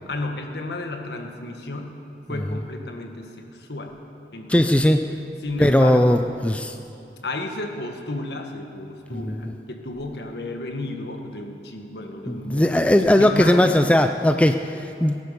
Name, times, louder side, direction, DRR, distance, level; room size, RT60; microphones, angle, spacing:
voice 1, 0.1-2.0 2.3-4.0 4.3-4.7 5.4-6.3 7.2-13.8, left 2 dB, 65° left, 3 dB, 1.6 m, -32 dB
voice 2, 4.5-5.0 5.6-6.8 9.1-9.4 12.3-15.2, left 1 dB, 5° left, 6 dB, 0.4 m, -18 dB
18.0 x 11.0 x 6.9 m, 2.9 s
head